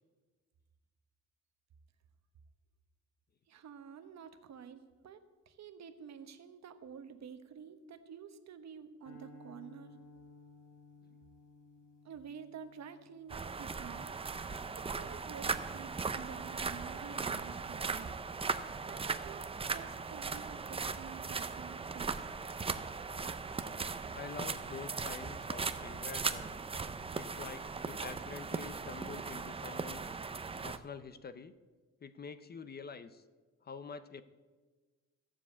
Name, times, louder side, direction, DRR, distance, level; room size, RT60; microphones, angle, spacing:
voice 1, 3.5-9.9 12.0-14.2 14.7-18.2 18.9-22.2, right 7 dB, 60° right, 9 dB, 1.1 m, -50 dB
sound 1, 9.0-15.4, left 2 dB, 75° left, 3.0 m, -58 dB
sound 2, 13.3-30.8, right 4 dB, 20° right, 0.5 m, -38 dB
voice 2, 24.1-26.6 27.2-30.2 30.6-31.5 32.0-33.2 33.6-34.2, left 5 dB, 30° left, 13 dB, 0.5 m, -47 dB
15.0 x 7.3 x 8.3 m, 1.3 s
wide cardioid pair, 170°, 31 cm